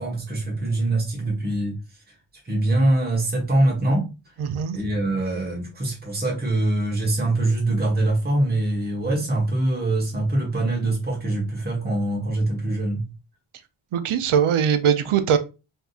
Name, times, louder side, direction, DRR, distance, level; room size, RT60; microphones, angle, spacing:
voice 1, 0.0-1.8 2.4-4.1 4.7-13.1, right 2 dB, 20° right, 1.1 m, -23 dB
voice 2, 4.4-4.8 13.9-15.4, right 8 dB, 80° right, 0.6 m, -21 dB
3.5 x 2.7 x 2.3 m
wide cardioid pair, 140°, 50 cm